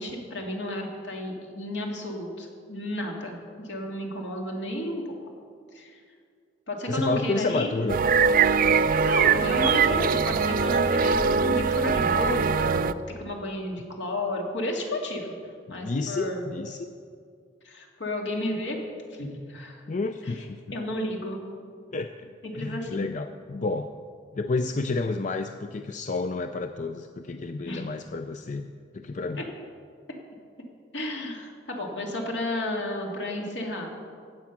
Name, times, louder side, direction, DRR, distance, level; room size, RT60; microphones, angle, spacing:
voice 1, 0.0-5.1 5.7-6.0 6.7-7.7 9.0-12.9 13.2-15.3 15.7-16.5 17.6-18.8 19.2-19.8 20.2-20.3 20.7-21.4 22.4-23.0 27.6-27.8 29.4-29.5 30.9-34.0, left 1 dB, 70° left, 0 dB, 2.3 m, -32 dB
voice 2, 6.9-8.0 9.9-10.1 15.7-16.9 19.9-20.8 21.9-24.0 24.3-28.7 28.9-29.4, left 3 dB, 40° left, 8 dB, 0.4 m, -30 dB
sound 1, 7.9-12.9, right 5 dB, 50° right, 0.4 m, -22 dB
15.0 x 8.5 x 6.0 m, 2.2 s
head